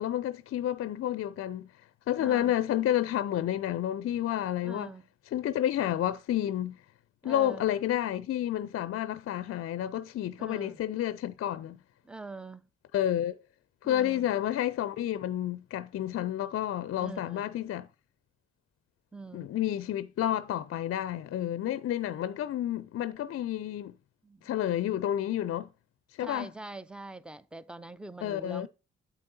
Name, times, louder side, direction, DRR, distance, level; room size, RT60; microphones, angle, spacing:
voice 1, 0.0-1.7 2.1-4.9 5.3-6.8 7.2-11.8 12.9-13.4 13.8-17.9 19.3-23.9 24.4-25.7 26.2-26.5 28.2-28.7, left 11 dB, 50° left, 0.5 m, -30 dB
voice 2, 2.2-2.5 4.6-5.1 7.2-7.7 10.4-10.8 12.0-12.7 13.8-14.3 17.0-17.4 19.1-19.5 24.2-24.5 26.2-28.7, right 3 dB, 5° right, 0.6 m, -44 dB
8.7 x 8.3 x 2.7 m
hypercardioid pair, 40°, 30 cm